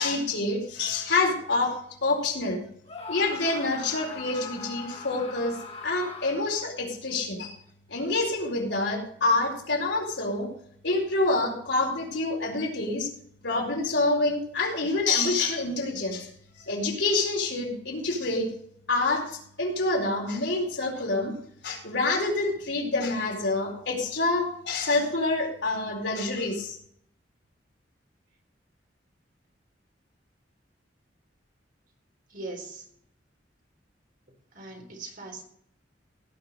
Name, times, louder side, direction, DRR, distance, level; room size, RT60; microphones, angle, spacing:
voice 1, 0.0-1.8 2.0-2.6 3.1-5.6 5.8-7.6 7.9-10.5 10.8-13.1 13.4-16.3 16.6-18.5 18.9-21.3 21.6-26.8, left 2 dB, 75° left, -1 dB, 4.4 m, -27 dB
Screaming, 2.8-6.6, left 4 dB, 35° left, 2.0 m, -41 dB
voice 2, 32.3-32.9 34.5-35.4, right 2 dB, 50° right, 1 dB, 3.9 m, -40 dB
17.5 x 5.9 x 6.6 m, 0.65 s
head